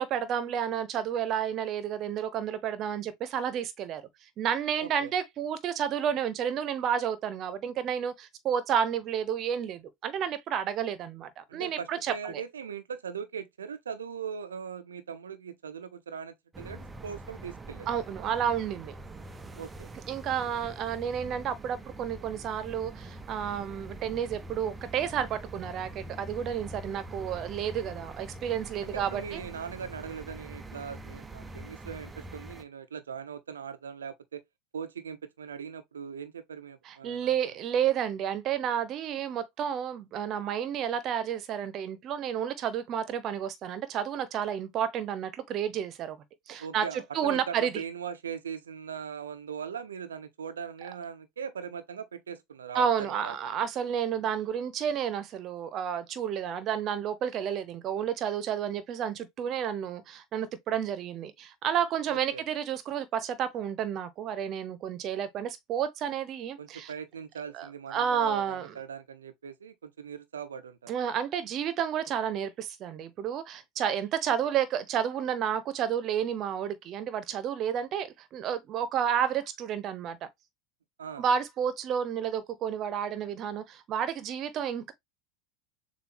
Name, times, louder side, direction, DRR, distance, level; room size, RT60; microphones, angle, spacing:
voice 1, 0.0-4.0 4.4-12.4 17.9-18.9 20.1-29.4 36.9-46.2 46.5-46.8 47.1-47.8 52.7-66.9 67.5-68.7 70.9-80.2 81.2-84.9, right 8 dB, 45° right, 0.9 m, -31 dB
voice 2, 4.8-5.1 11.5-17.9 19.5-19.9 28.8-34.4 34.7-37.5 46.6-53.4 62.1-62.4 66.6-70.9 81.0-81.3, right 7 dB, 80° right, 0.6 m, -40 dB
sound 1, 16.5-32.6, right 2 dB, 15° right, 0.7 m, -44 dB
6.9 x 2.6 x 2.7 m
figure-of-eight pair, 80°, 0 cm